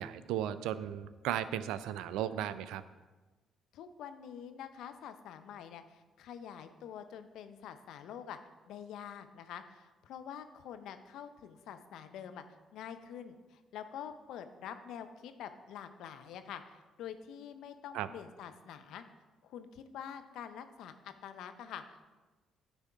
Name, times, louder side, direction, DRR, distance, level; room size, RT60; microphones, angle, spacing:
voice 1, 0.0-2.8 17.9-18.1, right 11 dB, 75° right, 14 dB, 0.3 m, -35 dB
voice 2, 3.7-8.4 8.7-12.4 12.7-19.0 19.4-22.1, left 8 dB, 70° left, 9 dB, 0.5 m, -46 dB
9.7 x 3.5 x 5.6 m, 1.3 s
hypercardioid pair, 50°, 0 cm